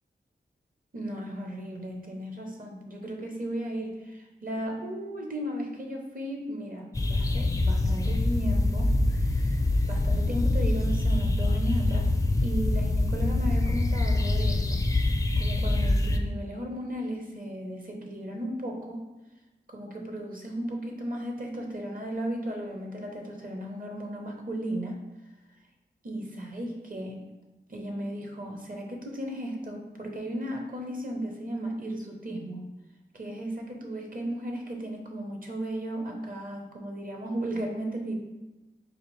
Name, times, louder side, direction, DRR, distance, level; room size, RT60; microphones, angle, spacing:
voice 1, 0.9-9.6 9.9-12.1 12.4-14.8 15.4-19.1 19.7-25.0 26.0-27.2 27.7-32.7 33.1-38.1, right 1 dB, 50° right, 2 dB, 0.8 m, -35 dB
sound 1, 6.9-16.2, left 2 dB, 15° left, 0.4 m, -25 dB
4.2 x 2.5 x 3.1 m, 1.0 s
cardioid pair, 45°, 19 cm